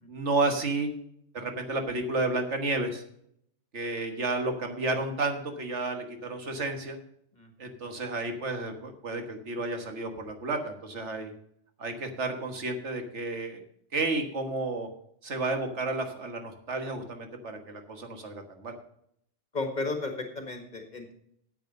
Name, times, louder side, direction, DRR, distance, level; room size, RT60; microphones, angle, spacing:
voice 1, 0.1-0.9 1.3-3.0 3.7-7.0 7.6-11.3 11.8-13.6 13.9-14.9 15.2-18.7, right 3 dB, 80° right, 5 dB, 1.8 m, -31 dB
voice 2, 19.5-21.1, left 3 dB, 40° left, 5 dB, 1.9 m, -34 dB
9.2 x 8.2 x 6.5 m, 0.72 s
omnidirectional pair, 1.2 m